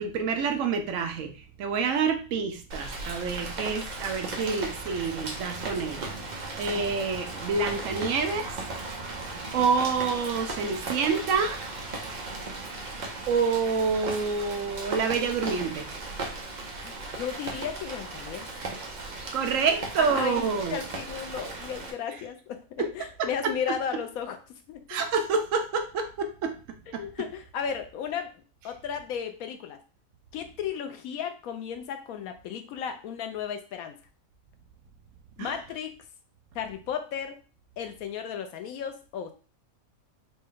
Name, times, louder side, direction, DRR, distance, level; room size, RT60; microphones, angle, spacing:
voice 1, 0.0-1.3 1.6-8.5 9.5-11.6 13.3-15.9 19.3-20.8 22.8-22.9 23.2-23.8 24.9-26.5 26.9-27.1 35.4-35.5, right 5 dB, 70° right, 6 dB, 1.0 m, -28 dB
Rain, 2.7-21.9, right 2 dB, 45° right, 0.6 m, -37 dB
voice 2, 16.8-18.5 20.0-25.0 26.9-28.3 28.6-29.8 30.3-33.9 35.4-35.9 36.5-37.4 37.8-39.3, left 7 dB, 90° left, 7 dB, 1.1 m, -35 dB
4.3 x 2.2 x 3.7 m, 0.35 s
omnidirectional pair, 1.4 m